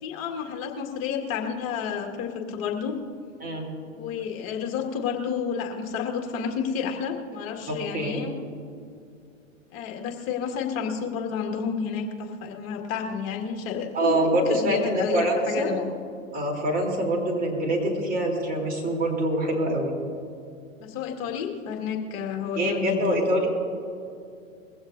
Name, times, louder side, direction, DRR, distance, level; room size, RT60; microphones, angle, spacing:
voice 1, 0.0-3.0 4.0-8.3 9.7-15.8 20.8-23.2, left 7 dB, 35° left, 2 dB, 2.0 m, -30 dB
voice 2, 7.7-8.2 13.9-15.7 16.3-19.9 22.5-23.5, right 1 dB, 20° right, 0 dB, 3.4 m, -25 dB
21.5 x 15.5 x 2.7 m, 2.5 s
figure-of-eight pair, 105°, 41 cm